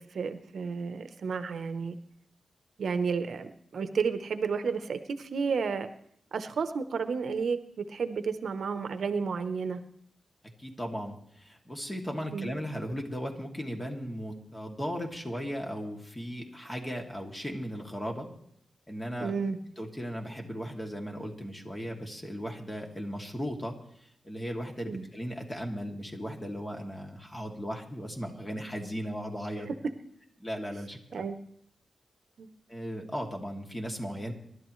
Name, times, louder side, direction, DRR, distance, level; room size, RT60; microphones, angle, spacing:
voice 1, 0.0-2.0 2.8-5.9 6.3-9.8 12.3-12.5 19.2-19.6 24.9-25.0 31.1-31.4 32.4-32.5, right 5 dB, 75° right, 10 dB, 0.9 m, -32 dB
voice 2, 10.6-18.3 18.9-19.4 19.8-29.7 30.4-31.2 32.7-34.3, equal, 15° left, 1 dB, 2.6 m, -37 dB
26.0 x 12.0 x 3.2 m, 0.70 s
wide cardioid pair, 95°, 0 cm